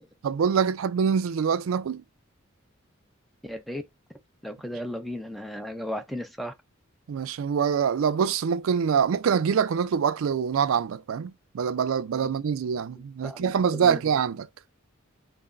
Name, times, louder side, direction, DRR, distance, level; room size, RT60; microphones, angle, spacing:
voice 1, 0.2-2.0 7.1-14.5, right 7 dB, 70° right, 0.4 m, -25 dB
voice 2, 3.4-3.8 4.4-6.5 13.0-14.0, equal, ahead, 0.4 m, -35 dB
5.6 x 2.0 x 2.5 m
head